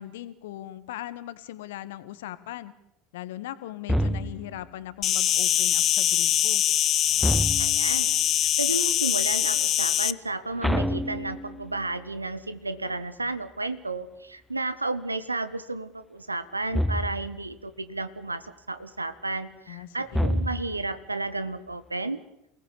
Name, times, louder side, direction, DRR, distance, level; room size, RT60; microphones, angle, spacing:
voice 1, 0.0-2.7 3.1-6.6 19.7-20.3, left 13 dB, 70° left, 15 dB, 1.6 m, -39 dB
sound 1, 3.9-4.6 7.2-8.0 10.6-11.8 16.7-17.4 20.1-20.9, equal, ahead, 1.6 m, -27 dB
Insect, 5.0-10.1, left 12 dB, 45° left, 0.9 m, -23 dB
voice 2, 7.6-22.2, right 2 dB, 90° right, 13 dB, 1.5 m, -32 dB
28.0 x 18.5 x 8.6 m, 0.83 s
figure-of-eight pair, 70°, 0 cm